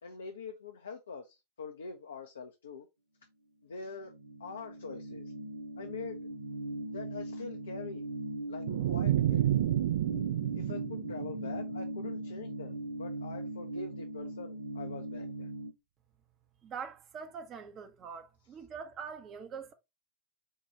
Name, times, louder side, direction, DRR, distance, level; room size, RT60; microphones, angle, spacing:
voice 1, 0.0-2.9 3.6-4.1 4.4-5.3 5.8-6.2 6.9-8.0 8.5-9.5 10.5-15.5, left 5 dB, 70° left, 0.5 m, -44 dB
sound 1, 4.0-15.7, right 1 dB, 75° right, 0.8 m, -40 dB
sound 2, 8.7-11.9, right 13 dB, 55° right, 0.4 m, -30 dB
voice 2, 16.6-19.7, right 6 dB, 30° right, 0.7 m, -43 dB
4.5 x 2.3 x 4.0 m
figure-of-eight pair, 90°, 0 cm